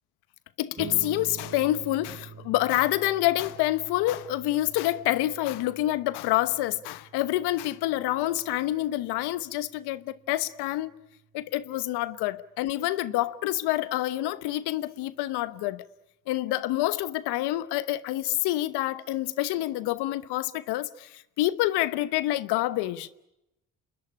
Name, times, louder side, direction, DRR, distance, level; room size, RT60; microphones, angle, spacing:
voice 1, 0.6-10.9 11.3-15.8 16.3-23.1, left 15 dB, 80° left, 1.0 m, -27 dB
sound 1, 0.8-11.5, right 5 dB, 45° right, 2.0 m, -47 dB
28.0 x 21.0 x 9.9 m
hypercardioid pair, 50°, 39 cm